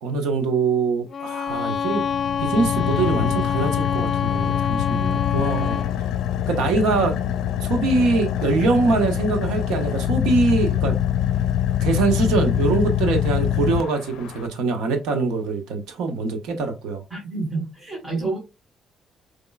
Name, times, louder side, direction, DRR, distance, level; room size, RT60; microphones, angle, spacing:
voice 1, 0.0-2.0 2.4-5.8 6.5-7.1 7.6-10.9 11.8-17.0, right 3 dB, 90° right, 0.9 m, -23 dB
Bowed string instrument, 1.1-6.0, left 7 dB, 45° left, 0.7 m, -26 dB
Car / Idling, 1.6-14.5, left 11 dB, 85° left, 0.4 m, -24 dB
voice 2, 17.1-18.4, right 3 dB, 20° right, 2.6 m, -28 dB
5.2 x 4.0 x 2.3 m
cardioid pair, 90°, 0 cm